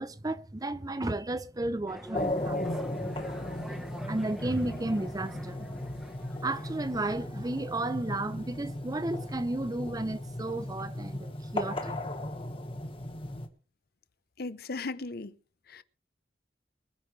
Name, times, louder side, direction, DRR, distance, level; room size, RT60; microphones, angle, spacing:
voice 1, 0.0-2.6 4.1-5.7 6.4-12.0, right 2 dB, 20° right, 0.6 m, -33 dB
sound 1, 1.9-7.1, equal, 5° right, 1.2 m, -47 dB
sound 2, 2.1-13.5, left 1 dB, 30° left, 1.5 m, -36 dB
voice 2, 14.4-15.3 15.7-15.8, left 3 dB, 55° left, 0.7 m, -37 dB
24.5 x 10.0 x 3.2 m
head